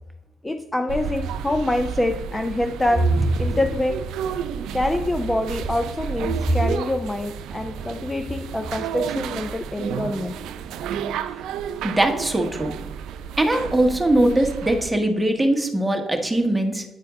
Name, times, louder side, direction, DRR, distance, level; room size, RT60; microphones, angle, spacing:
voice 1, 0.4-3.0 3.4-4.0 4.7-10.4, left 1 dB, 15° left, 6 dB, 0.5 m, -25 dB
sound 1, 0.9-14.9, right 7 dB, 85° right, 0.4 m, -32 dB
voice 2, 11.8-12.8 13.4-16.8, right 1 dB, 10° right, 4 dB, 1.1 m, -21 dB
9.1 x 4.4 x 3.5 m, 1.1 s
cardioid pair, 90°, 0 cm